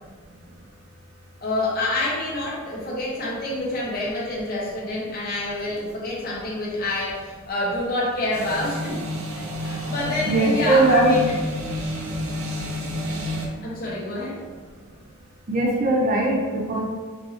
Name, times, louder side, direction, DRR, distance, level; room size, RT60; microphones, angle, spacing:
voice 1, 1.4-9.0 9.3-11.2 13.6-14.4, left 2 dB, 45° left, -6 dB, 1.0 m, -27 dB
sound 1, 8.3-13.5, left 1 dB, 85° right, 0.6 m, -30 dB
voice 2, 10.3-11.2 15.5-16.9, right 2 dB, 40° right, -2 dB, 0.5 m, -20 dB
4.6 x 2.7 x 2.9 m, 1.4 s
head